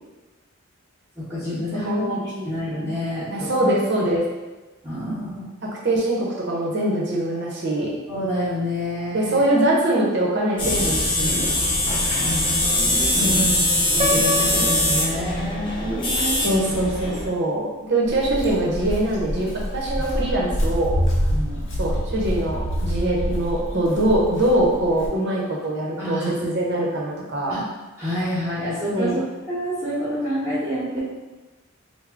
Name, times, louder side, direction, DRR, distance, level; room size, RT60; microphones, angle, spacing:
voice 1, 1.2-3.5 4.8-5.5 8.1-9.4 12.2-12.7 13.1-13.4 13.9-16.5 21.3-21.6 26.0-26.3 27.5-27.6 28.0-29.2 29.5-31.0, equal, 15° right, -12 dB, 0.9 m, -28 dB
voice 2, 1.8-2.5 3.3-4.2 5.8-7.9 9.1-11.4 13.2-13.6 16.4-21.0 21.8-27.5 28.9-29.2, right 1 dB, 55° right, -3 dB, 0.8 m, -23 dB
sound 1, 10.6-17.3, left 1 dB, 25° left, 0.7 m, -22 dB
Piano, 14.0-16.0, left 1 dB, 30° right, 0.3 m, -28 dB
Walk footsteps, 18.0-25.1, equal, 65° left, 0.7 m, -26 dB
3.3 x 2.2 x 3.6 m, 1.2 s
head